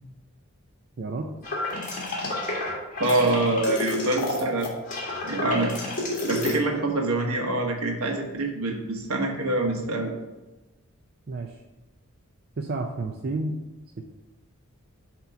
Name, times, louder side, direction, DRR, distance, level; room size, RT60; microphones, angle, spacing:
voice 1, 1.0-1.3 11.3-11.6 12.6-13.6, right 2 dB, 45° right, 2 dB, 0.5 m, -30 dB
sound 1, 1.4-6.5, left 2 dB, 35° left, 1.7 m, -30 dB
voice 2, 3.0-4.7 5.2-5.7 6.2-10.1, right 2 dB, 75° right, 2 dB, 1.2 m, -25 dB
7.6 x 3.0 x 5.7 m, 1.1 s
head